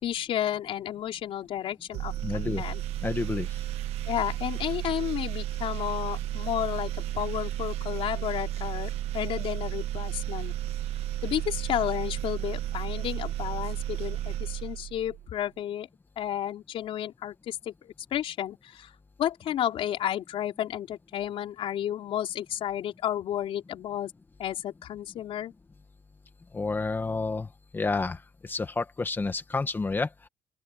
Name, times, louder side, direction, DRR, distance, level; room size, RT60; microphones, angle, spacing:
voice 1, 0.0-2.8 4.1-10.5 11.2-15.9 16.2-18.9 19.2-24.1 24.4-25.5, left 11 dB, 65° left, 4.2 m, -32 dB
sound 1, 1.9-15.3, right 13 dB, 85° right, 1.4 m, -33 dB
voice 2, 2.2-2.6 3.0-3.6 26.5-27.5 27.7-30.3, left 3 dB, 20° left, 1.9 m, -30 dB
open air
cardioid pair, 135°, 10 cm